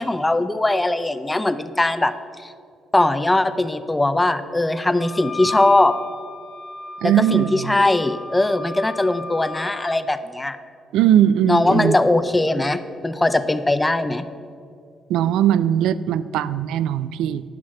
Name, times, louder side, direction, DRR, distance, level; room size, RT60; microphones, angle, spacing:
voice 1, 0.0-2.1 2.4-2.5 2.9-5.9 7.0-10.6 11.5-14.3, left 2 dB, 15° left, 12 dB, 0.5 m, -20 dB
Wind instrument woodwind instrument, 5.0-10.0, left 3 dB, 45° left, 0.9 m, -34 dB
voice 2, 7.0-7.8 10.9-12.0 15.1-17.4, right 10 dB, 90° right, 16 dB, 0.3 m, -19 dB
11.5 x 5.9 x 5.9 m, 2.3 s
cardioid pair, 90°, 0 cm